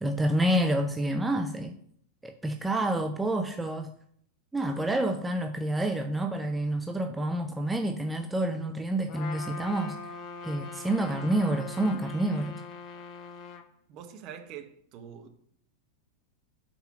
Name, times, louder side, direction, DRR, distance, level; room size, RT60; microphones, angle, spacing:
voice 1, 0.0-1.8 2.2-3.9 4.5-10.0 10.4-12.6, right 1 dB, 10° right, 0.5 m, -28 dB
Trumpet, 9.1-13.7, left 4 dB, 35° left, 0.7 m, -42 dB
voice 2, 13.9-15.3, right 8 dB, 40° right, 0.9 m, -44 dB
5.5 x 4.3 x 5.5 m
figure-of-eight pair, 90°, 0 cm